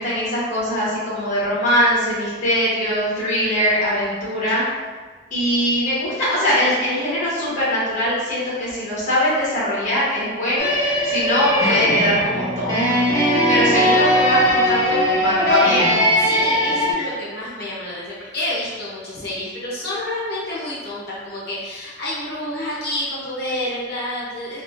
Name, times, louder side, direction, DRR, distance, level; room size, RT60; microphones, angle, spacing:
voice 1, 0.0-4.6 5.3-13.0 13.5-15.9, equal, 40° left, -9 dB, 1.1 m, -21 dB
sound 1, 10.6-16.9, equal, 15° left, 0.5 m, -19 dB
voice 2, 13.1-13.9 16.2-24.6, left 1 dB, 55° left, -7 dB, 0.8 m, -29 dB
3.3 x 2.1 x 2.6 m, 1.4 s
head